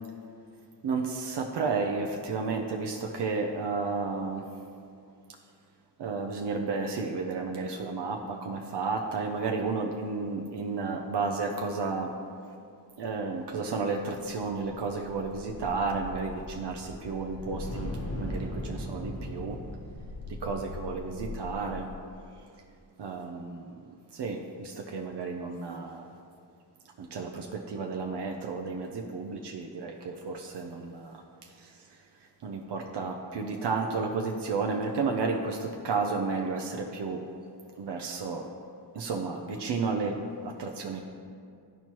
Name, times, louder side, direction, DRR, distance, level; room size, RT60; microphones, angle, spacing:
voice 1, 0.8-4.5 5.3-5.4 6.0-12.1 13.0-19.6 20.3-21.9 23.0-26.2 27.0-37.2 37.7-38.5 38.9-41.0, right 4 dB, 70° right, 2 dB, 0.6 m, -32 dB
sound 1, 14.3-22.3, left 1 dB, 35° left, 1.1 m, -39 dB
12.0 x 4.5 x 2.9 m, 2.4 s
wide cardioid pair, 130°, 42 cm